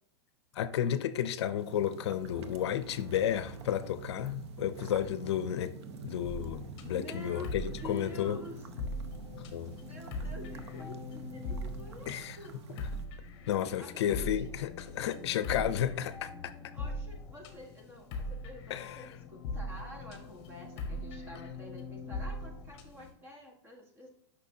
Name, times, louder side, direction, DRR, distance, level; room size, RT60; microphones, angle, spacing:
voice 1, 0.5-5.7 6.0-8.4 9.5-9.8 12.1-12.4 13.5-16.5 18.7-19.0, left 10 dB, 80° left, 0.5 m, -32 dB
sound 1, 1.6-13.1, right 5 dB, 80° right, 0.8 m, -48 dB
sound 2, 2.2-9.1, right 2 dB, 40° right, 1.5 m, -49 dB
sound 3, 6.3-23.1, left 2 dB, 40° left, 1.2 m, -41 dB
voice 2, 6.8-8.6 9.8-12.5 13.8-14.4 16.7-24.1, left 1 dB, 15° right, 1.4 m, -48 dB
6.4 x 5.8 x 2.7 m
supercardioid pair, 155°, 14 cm